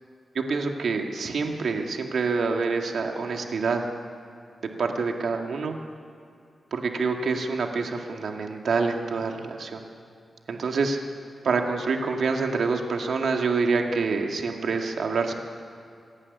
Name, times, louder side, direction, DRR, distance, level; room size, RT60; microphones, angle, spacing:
voice 1, 0.3-3.8 4.8-5.8 6.7-9.8 10.5-11.0 11.4-15.3, right 4 dB, 70° right, 3 dB, 2.2 m, -26 dB
26.5 x 11.0 x 9.7 m, 2.5 s
wide cardioid pair, 140°, 0 cm